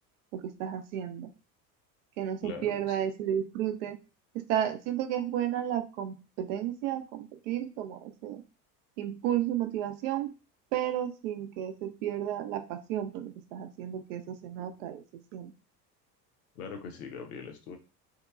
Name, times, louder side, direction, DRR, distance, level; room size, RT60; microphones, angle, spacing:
voice 1, 0.3-1.3 2.2-4.0 4.3-8.4 9.0-10.3 10.7-15.0 15.3-15.5, right 11 dB, 50° right, 7 dB, 0.5 m, -32 dB
voice 2, 2.4-3.0 16.5-17.8, left 5 dB, 60° left, 4 dB, 0.8 m, -41 dB
2.9 x 2.8 x 2.3 m, 0.31 s
figure-of-eight pair, 65°, 49 cm